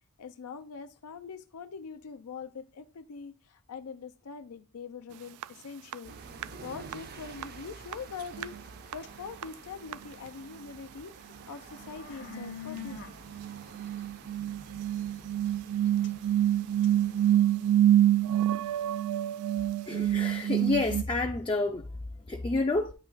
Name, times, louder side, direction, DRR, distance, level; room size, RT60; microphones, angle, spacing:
voice 1, 0.2-8.6 8.9-13.1, left 5 dB, 75° left, 0.5 m, -43 dB
sound 1, 5.4-5.5 5.9-6.0 6.4-6.5 6.9-7.0 7.4-7.5 7.9-8.0 8.3-8.6 8.9-9.0 9.4-9.5 9.9-10.0 10.3-10.4 12.3-12.4 12.8-21.0, right 11 dB, 80° right, 0.3 m, -27 dB
sound 2, 6.0-17.4, right 3 dB, 45° right, 0.6 m, -50 dB
sound 3, 8.1-10.1 10.6-18.8, left 5 dB, 55° left, 0.9 m, -48 dB
voice 2, 19.9-21.8 22.3-22.9, left 2 dB, 20° left, 0.4 m, -29 dB
8.8 x 3.0 x 3.9 m
head